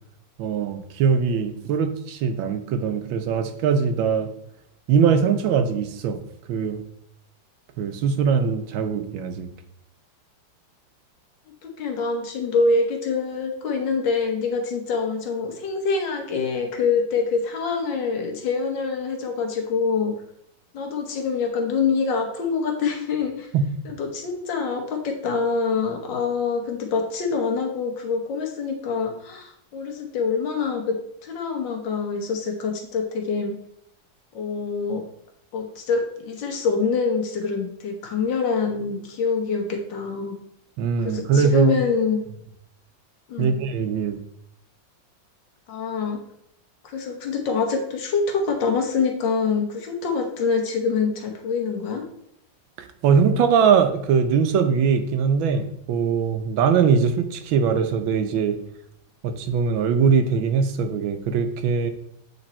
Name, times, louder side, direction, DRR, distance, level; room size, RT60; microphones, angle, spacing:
voice 1, 0.4-4.3 4.9-6.2 6.5-6.9 7.8-9.5 23.5-23.7 40.8-41.8 43.4-44.2 52.8-58.6 59.2-61.9, right 6 dB, 80° right, 9 dB, 1.5 m, -21 dB
voice 2, 11.6-20.1 20.7-23.5 23.8-31.0 31.2-33.6 34.3-35.0 35.5-40.4 41.0-42.2 43.3-43.6 45.7-46.2 46.8-52.0, left 5 dB, 70° left, 3 dB, 1.7 m, -25 dB
8.0 x 4.0 x 4.2 m, 0.74 s
omnidirectional pair, 2.1 m